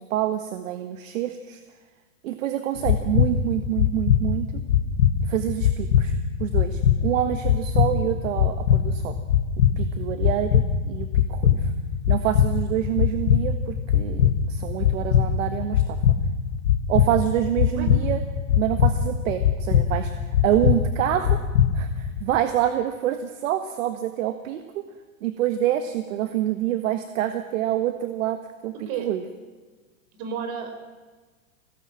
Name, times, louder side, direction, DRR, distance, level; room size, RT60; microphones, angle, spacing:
voice 1, 0.0-1.6 2.2-4.6 5.3-9.1 9.8-11.7 12.1-15.8 16.9-18.2 18.6-20.1 20.4-21.4 21.7-24.8 25.2-29.2, right 12 dB, 70° right, 8 dB, 1.7 m, -27 dB
sound 1, 2.8-22.2, left 8 dB, 85° left, 2.7 m, -22 dB
voice 2, 30.2-30.9, right 7 dB, 55° right, 6 dB, 5.0 m, -32 dB
21.0 x 17.0 x 8.9 m, 1.3 s
hypercardioid pair, 115°, 41 cm